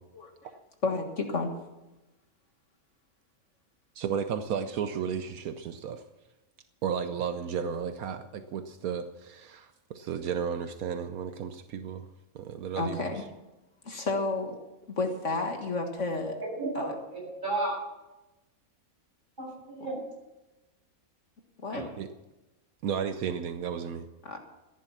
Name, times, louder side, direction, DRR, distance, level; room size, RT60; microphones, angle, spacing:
voice 1, 0.8-1.5 12.8-13.2 13.8-14.6 15.0-16.3 16.8-16.9 21.6-21.8 24.2-24.4, left 3 dB, 55° left, 4 dB, 1.9 m, -31 dB
voice 2, 3.9-6.0 6.8-12.1 12.3-13.2 22.0-22.1 22.8-24.1, right 7 dB, 75° right, 9 dB, 1.2 m, -33 dB
voice 3, 16.4-17.7 19.4-20.0 21.7-21.8, right 2 dB, 30° right, -4 dB, 7.8 m, -33 dB
15.0 x 10.5 x 7.2 m, 1.0 s
omnidirectional pair, 1.5 m